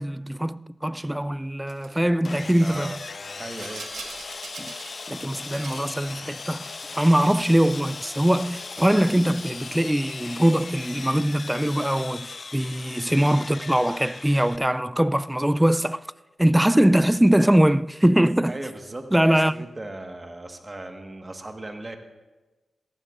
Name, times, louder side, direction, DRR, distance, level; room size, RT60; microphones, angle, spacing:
voice 1, 0.0-2.9 4.6-4.7 5.1-16.0 16.4-18.6 19.1-19.7, right 1 dB, 10° right, 0.4 m, -22 dB
Rattle, 1.7-2.0 3.1-5.0 5.3-6.0 6.8-7.5 8.1-8.8, right 4 dB, 85° right, 1.4 m, -43 dB
Sawing, 2.2-14.6, left 4 dB, 55° left, 0.5 m, -38 dB
voice 2, 2.6-3.0 3.4-3.9 18.5-22.0, right 2 dB, 30° right, 1.5 m, -37 dB
18.5 x 14.5 x 2.5 m
cardioid pair, 55°, 0 cm